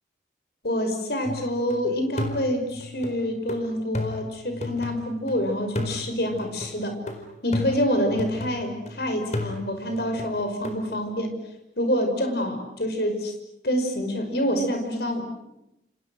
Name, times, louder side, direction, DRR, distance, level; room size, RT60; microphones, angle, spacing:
voice 1, 0.6-7.0 7.4-11.3 11.8-13.3 13.6-15.5, equal, 60° left, 5 dB, 5.6 m, -26 dB
sound 1, 1.3-1.8 2.2-5.3 5.8-8.9 9.3-10.8, left 1 dB, 40° left, 4.3 m, -34 dB
29.5 x 29.0 x 6.4 m, 0.86 s
head